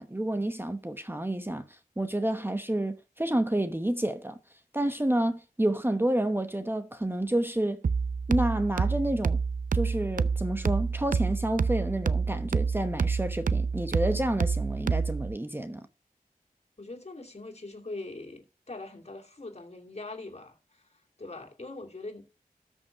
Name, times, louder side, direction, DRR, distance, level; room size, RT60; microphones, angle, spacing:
voice 1, 0.0-1.6 2.0-4.4 4.7-7.8 8.3-9.4 9.7-15.8, right 1 dB, 15° right, 1.0 m, -29 dB
sound 1, 7.8-15.4, right 5 dB, 65° right, 0.5 m, -28 dB
voice 2, 16.8-22.3, left 2 dB, 45° left, 2.6 m, -42 dB
13.0 x 5.6 x 5.6 m
cardioid pair, 45°, 15 cm